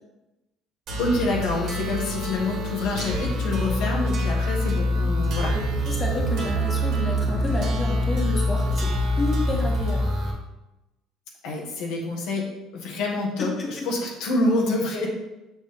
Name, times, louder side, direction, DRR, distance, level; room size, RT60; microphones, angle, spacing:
sound 1, 0.9-10.3, equal, 60° right, 1.7 m, -25 dB
voice 1, 1.0-5.5 11.4-15.1, left 2 dB, 75° left, -1 dB, 1.4 m, -27 dB
voice 2, 5.5-10.1 13.4-13.9, left 2 dB, 30° left, -1 dB, 1.5 m, -30 dB
6.3 x 5.3 x 3.6 m, 0.99 s
cardioid pair, 100°, 0 cm